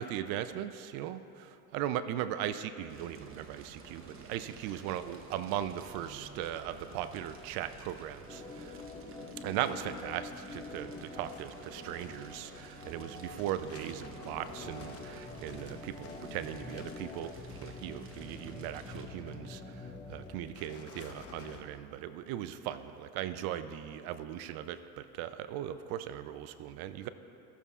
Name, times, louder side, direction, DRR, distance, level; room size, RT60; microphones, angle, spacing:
voice 1, 0.0-8.8 9.4-17.3 17.6-27.1, right 11 dB, 55° right, 12 dB, 0.5 m, -38 dB
Fire, 2.9-19.0, right 3 dB, 30° right, 1.0 m, -52 dB
Organ, 8.3-20.4, left 3 dB, 10° left, 0.6 m, -47 dB
sound 1, 10.8-21.6, left 6 dB, 30° left, 0.9 m, -53 dB
17.0 x 6.9 x 2.4 m, 2.8 s
supercardioid pair, 105°, 45 cm